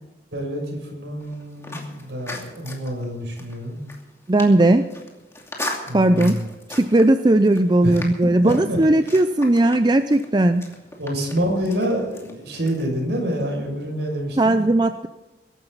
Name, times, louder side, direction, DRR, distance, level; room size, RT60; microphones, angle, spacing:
voice 1, 0.3-3.8 5.9-6.5 7.8-8.0 8.4-8.8 11.0-14.6, equal, 65° right, 1 dB, 6.6 m, -27 dB
sound 1, 1.2-12.8, left 2 dB, 15° left, 2.6 m, -38 dB
voice 2, 4.3-4.8 5.9-6.4 6.7-10.6 14.4-15.1, right 1 dB, 25° right, 9 dB, 0.5 m, -17 dB
23.0 x 11.5 x 4.1 m, 1.1 s
head